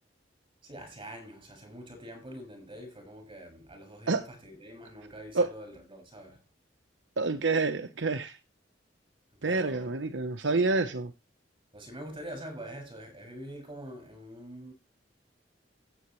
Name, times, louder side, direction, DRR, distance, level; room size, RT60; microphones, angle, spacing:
voice 1, 0.6-6.4 9.4-10.0 11.7-14.7, right 1 dB, 30° right, 6.3 m, -45 dB
voice 2, 7.2-8.4 9.4-11.1, right 3 dB, 80° right, 0.9 m, -28 dB
15.5 x 8.0 x 3.2 m
head